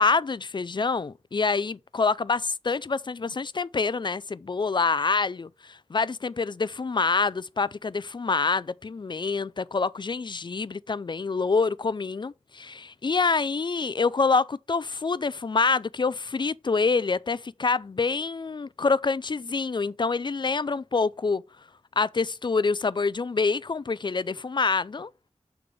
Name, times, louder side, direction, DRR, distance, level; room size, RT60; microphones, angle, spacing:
voice 1, 0.0-21.4 22.0-25.1, left 4 dB, 40° left, 0.3 m, -26 dB
6.8 x 3.5 x 4.9 m
wide cardioid pair, 55°, 12 cm